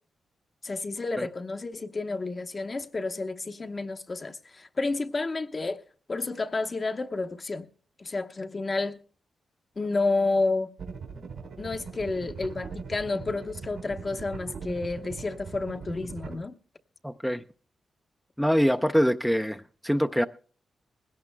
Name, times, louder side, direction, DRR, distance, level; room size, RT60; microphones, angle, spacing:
voice 1, 0.6-5.8 6.1-7.7 8.0-9.0 9.8-10.7 11.6-16.5, left 3 dB, 40° left, 0.9 m, -30 dB
sound 1, 10.8-16.3, right 5 dB, 75° right, 3.1 m, -40 dB
voice 2, 17.0-17.4 18.4-20.2, equal, ahead, 0.5 m, -24 dB
20.0 x 17.0 x 2.2 m
cardioid pair, 60°, 0 cm